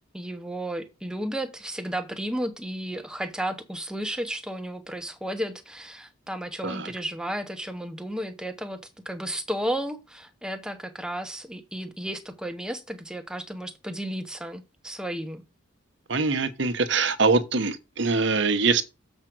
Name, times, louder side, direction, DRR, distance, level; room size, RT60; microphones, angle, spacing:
voice 1, 0.1-15.4, right 1 dB, 5° right, 1.0 m, -33 dB
voice 2, 16.1-18.8, right 4 dB, 60° right, 1.1 m, -23 dB
7.3 x 5.1 x 6.1 m
head